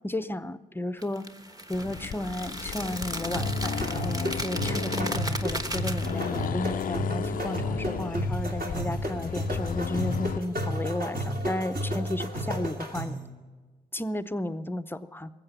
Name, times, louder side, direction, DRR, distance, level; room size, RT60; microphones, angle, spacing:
voice 1, 0.0-1.3 1.7-13.2 13.9-15.3, left 1 dB, 10° left, 14 dB, 0.7 m, -33 dB
sound 1, 1.0-6.5, right 1 dB, 20° right, 1.2 m, -36 dB
Accelerating revving vroom, 1.7-10.4, left 9 dB, 45° left, 0.4 m, -35 dB
sound 2, 3.3-13.3, equal, 50° right, 2.5 m, -31 dB
19.5 x 7.8 x 6.8 m, 1.4 s
hypercardioid pair, 45°, 20 cm